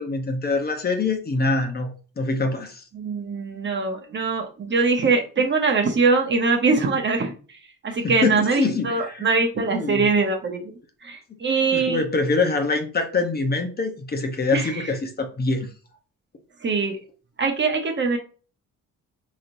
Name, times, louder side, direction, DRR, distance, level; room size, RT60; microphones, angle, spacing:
voice 1, 0.0-1.9 2.2-2.8 8.0-9.3 9.7-10.1 11.3-11.4 11.7-15.7, left 3 dB, 30° left, 4 dB, 0.8 m, -24 dB
voice 2, 2.9-7.6 7.8-10.7 11.0-12.0 14.5-14.9 16.6-17.0 17.4-18.2, right 4 dB, 40° right, 3 dB, 0.9 m, -22 dB
3.9 x 3.1 x 2.6 m, 0.37 s
cardioid pair, 90°, 30 cm